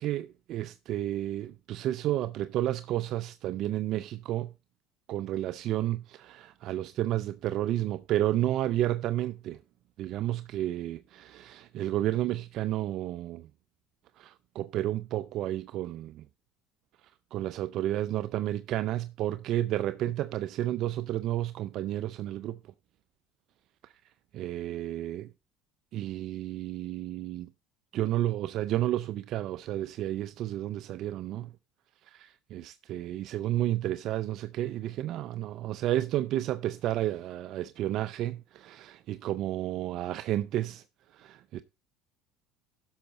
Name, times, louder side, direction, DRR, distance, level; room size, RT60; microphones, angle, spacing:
voice 1, 0.0-4.5 5.1-9.6 10.0-13.5 14.2-16.3 17.3-22.6 23.8-23.9 24.3-25.3 25.9-27.5 27.9-31.5 32.0-40.8 41.1-41.6, right 13 dB, 55° right, 0.5 m, -31 dB
11.5 x 6.5 x 4.1 m
supercardioid pair, 110°, 0 cm